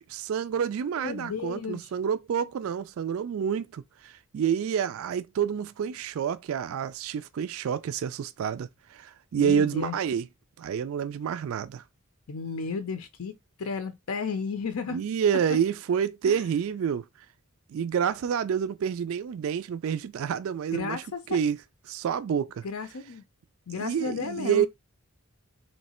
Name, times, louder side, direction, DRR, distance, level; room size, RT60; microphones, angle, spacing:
voice 1, 0.1-10.3 10.6-11.8 14.9-17.0 17.7-21.0 21.3-21.6 21.9-22.6 23.8-24.7, right 8 dB, 70° right, 0.3 m, -28 dB
voice 2, 1.0-1.9 9.4-10.0 12.3-15.0 16.3-16.4 20.7-21.4 22.6-23.2 23.7-24.7, left 5 dB, 80° left, 0.6 m, -33 dB
3.2 x 2.8 x 4.2 m
head